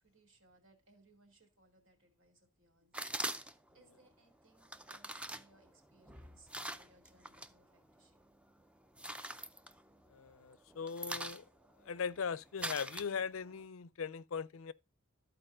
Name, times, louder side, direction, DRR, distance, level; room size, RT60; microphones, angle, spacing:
voice 1, 0.0-8.2, right 2 dB, 70° right, 2.8 m, -67 dB
sound 1, 2.9-3.7 4.6-7.5 7.9-8.4 8.8-10.3 10.6-13.6, right 1 dB, 5° right, 0.5 m, -43 dB
voice 2, 10.1-11.4 11.8-14.7, left 6 dB, 80° left, 0.5 m, -39 dB
13.5 x 4.6 x 3.7 m
head